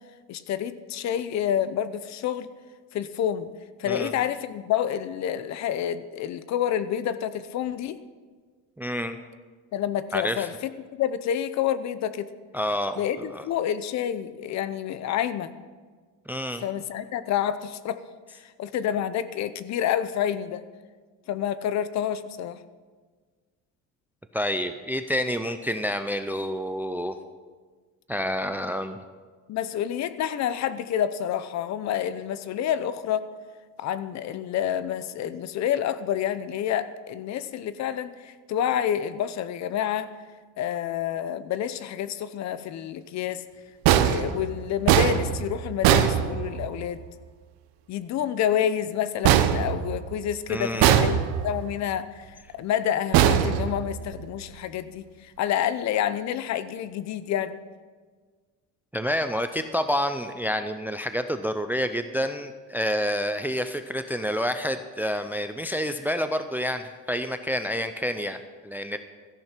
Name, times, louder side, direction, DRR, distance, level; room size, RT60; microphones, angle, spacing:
voice 1, 0.3-2.5 2.9-3.5 3.8-8.0 9.7-12.3 13.0-15.5 16.6-18.0 18.3-20.6 21.3-22.6 29.5-33.3 33.8-40.1 40.6-43.4 43.9-47.0 47.9-51.2 51.4-52.3 52.5-57.6, left 10 dB, 50° left, 14 dB, 0.8 m, -28 dB
voice 2, 8.8-9.2 10.1-10.5 12.5-13.5 16.3-16.6 24.3-27.2 28.1-29.0 50.5-51.0 58.9-69.0, equal, 5° right, 9 dB, 0.4 m, -28 dB
sound 1, 43.9-46.9 49.2-50.3 50.8-51.6 53.1-54.2, right 10 dB, 75° right, 1.1 m, -21 dB
16.0 x 14.0 x 4.5 m, 1.5 s
cardioid pair, 140°, 36 cm